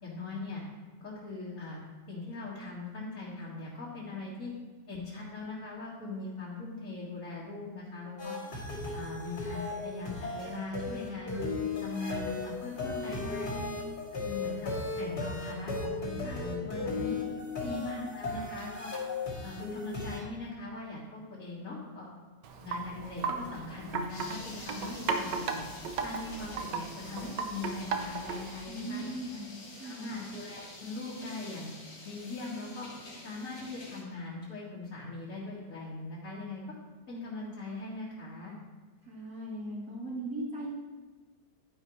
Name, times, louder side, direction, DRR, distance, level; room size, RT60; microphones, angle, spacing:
voice 1, 0.0-0.6 1.0-1.8 2.1-4.5 4.9-8.3 8.9-11.4 11.8-13.7 14.2-17.2 17.6-18.9 19.4-22.1 22.6-25.7 26.0-29.0 29.8-31.7 32.0-32.9 33.2-36.6 37.1-38.5, left 3 dB, 45° left, -8 dB, 2.4 m, -40 dB
sound 1, 8.2-20.2, left 3 dB, 65° left, 3.0 m, -36 dB
Wind chime, 22.4-28.6, right 5 dB, 75° right, 1.4 m, -36 dB
sound 2, 24.1-34.0, left 2 dB, 90° left, 2.6 m, -48 dB
voice 2, 28.6-30.1 39.0-40.7, right 1 dB, 55° right, -7 dB, 3.8 m, -39 dB
11.0 x 10.0 x 3.2 m, 1.3 s
omnidirectional pair, 1.9 m